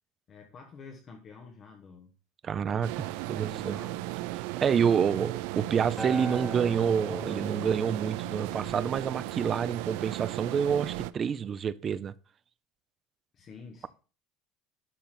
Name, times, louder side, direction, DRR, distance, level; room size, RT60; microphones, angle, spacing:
voice 1, 0.3-2.1 2.7-4.1 4.7-5.3 13.3-13.9, left 5 dB, 25° left, 1.2 m, -48 dB
voice 2, 2.4-2.9 3.3-3.8 4.6-12.1, right 7 dB, 25° right, 0.5 m, -28 dB
sound 1, 2.8-11.1, right 18 dB, 70° right, 0.5 m, -36 dB
Acoustic guitar, 6.0-10.3 11.1-11.2, left 1 dB, 5° left, 2.6 m, -41 dB
11.5 x 4.0 x 7.5 m
cardioid pair, 175°, 0 cm